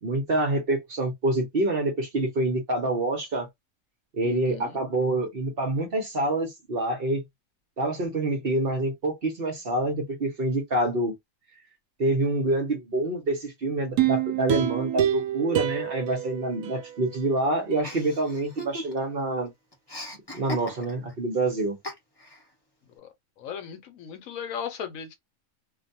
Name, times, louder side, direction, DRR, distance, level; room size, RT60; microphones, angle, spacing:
voice 1, 0.0-3.5 4.1-7.2 7.8-11.1 12.0-19.5 20.3-21.8, right 2 dB, 50° right, 0.9 m, -26 dB
voice 2, 4.2-4.8 23.0-23.1 23.4-25.1, left 8 dB, 75° left, 1.0 m, -37 dB
sound 1, 14.0-17.3 17.7-17.8, right 11 dB, 80° right, 1.0 m, -27 dB
Chuckle chortle, 17.8-19.2 19.5-21.1 21.8-22.4, equal, 20° left, 0.8 m, -38 dB
2.5 x 2.2 x 2.6 m
omnidirectional pair, 1.5 m